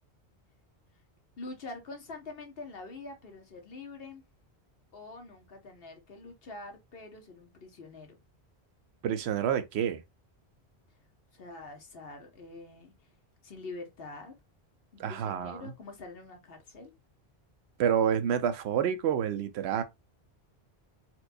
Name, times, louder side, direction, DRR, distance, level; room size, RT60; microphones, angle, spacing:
voice 1, 1.4-4.2 4.9-8.2 11.3-12.9 13.4-14.3 14.9-16.9, left 3 dB, 60° left, 1.1 m, -45 dB
voice 2, 9.0-10.0 15.0-15.6 17.8-19.8, right 8 dB, 75° right, 0.8 m, -28 dB
4.4 x 2.3 x 2.5 m
omnidirectional pair, 1.1 m